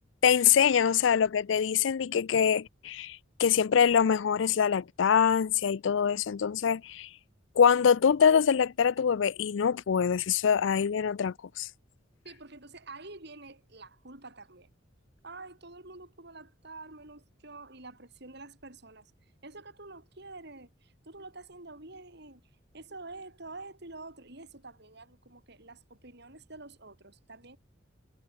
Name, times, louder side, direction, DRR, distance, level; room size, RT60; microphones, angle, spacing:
voice 1, 0.2-7.1 7.6-11.7, left 7 dB, 70° left, 0.4 m, -24 dB
voice 2, 12.2-14.7 15.2-19.1 19.4-22.4 22.7-27.6, right 3 dB, 60° right, 7.0 m, -47 dB
head